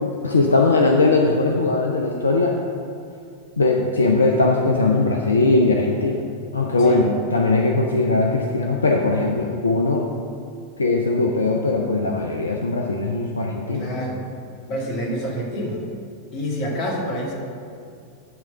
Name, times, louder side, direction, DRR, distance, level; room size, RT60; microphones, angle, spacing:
voice 1, 0.0-2.6 3.6-6.2 6.5-10.1 10.8-13.9, left 3 dB, 75° left, 1 dB, 0.5 m, -20 dB
voice 2, 13.7-14.2 14.7-15.8 16.3-17.3, equal, 40° left, -1 dB, 1.8 m, -27 dB
10.5 x 3.6 x 6.2 m, 2.4 s
figure-of-eight pair, 90°, 0 cm